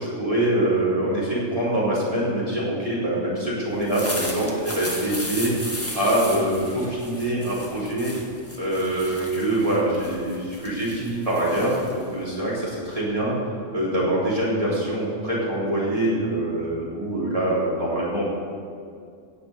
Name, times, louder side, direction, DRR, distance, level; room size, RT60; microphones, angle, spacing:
voice 1, 0.0-5.5 5.9-8.1 8.6-13.3 13.7-18.2, right 1 dB, 30° right, -8 dB, 3.9 m, -24 dB
sound 1, 3.7-13.0, left 1 dB, 10° left, 1.4 m, -36 dB
17.0 x 6.1 x 6.7 m, 2.3 s
omnidirectional pair, 1.3 m